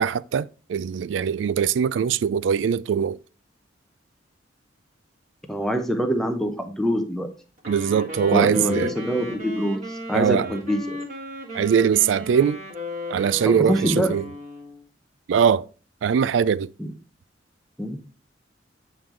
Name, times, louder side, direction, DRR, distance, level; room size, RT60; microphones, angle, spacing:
voice 1, 0.0-3.2 7.7-8.9 10.1-10.5 11.5-12.6 13.1-14.2 15.3-15.7 16.0-16.7, right 7 dB, 75° right, 0.3 m, -21 dB
voice 2, 5.5-7.3 8.3-11.0 13.4-14.1 16.8-16.9 17.8-18.0, equal, ahead, 0.9 m, -25 dB
Wind instrument woodwind instrument, 7.6-14.8, left 1 dB, 45° right, 1.9 m, -35 dB
8.6 x 3.8 x 3.0 m
head